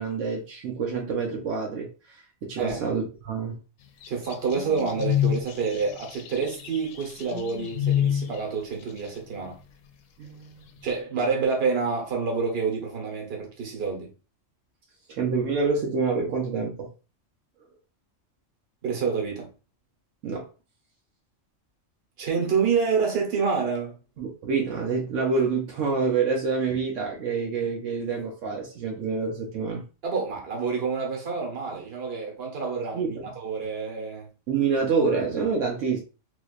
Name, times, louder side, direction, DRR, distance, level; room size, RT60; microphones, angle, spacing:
voice 1, 0.0-3.6 10.2-10.7 15.1-16.9 20.2-20.5 24.2-29.8 32.9-33.1 34.5-36.0, right 5 dB, 75° right, 1.1 m, -27 dB
sound 1, 4.0-8.4, left 10 dB, 85° left, 0.9 m, -26 dB
voice 2, 4.1-9.6 10.8-14.1 18.8-19.5 22.2-23.9 30.0-34.3, right 5 dB, 55° right, 1.2 m, -28 dB
3.1 x 2.9 x 2.4 m
omnidirectional pair, 1.3 m